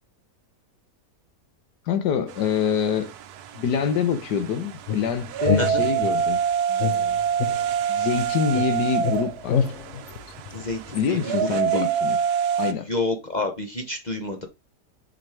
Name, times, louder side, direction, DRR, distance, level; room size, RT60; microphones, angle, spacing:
voice 1, 1.9-3.1 3.5-6.4 6.7-7.2 7.9-9.7 10.9-12.2 12.6-12.9, left 7 dB, 75° left, 1.5 m, -26 dB
sound 1, 2.3-12.7, right 8 dB, 70° right, 1.1 m, -27 dB
sound 2, 4.9-6.3 6.8-8.2 8.5-11.1, left 7 dB, 60° left, 0.8 m, -28 dB
voice 2, 10.5-11.8 12.6-14.5, left 2 dB, 35° left, 0.9 m, -29 dB
6.0 x 5.2 x 3.4 m
omnidirectional pair, 1.8 m